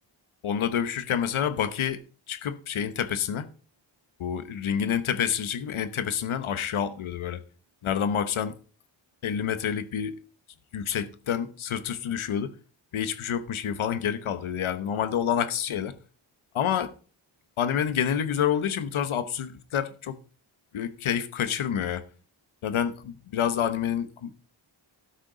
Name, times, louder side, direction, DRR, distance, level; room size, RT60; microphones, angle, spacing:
voice 1, 0.4-2.0 2.3-3.5 4.2-7.4 7.8-8.6 9.2-10.2 10.7-12.5 12.9-15.9 16.5-16.9 17.6-20.2 20.7-22.0 22.6-24.3, left 8 dB, 85° left, 1.1 m, -28 dB
12.5 x 6.4 x 5.0 m
wide cardioid pair, 150°, 47 cm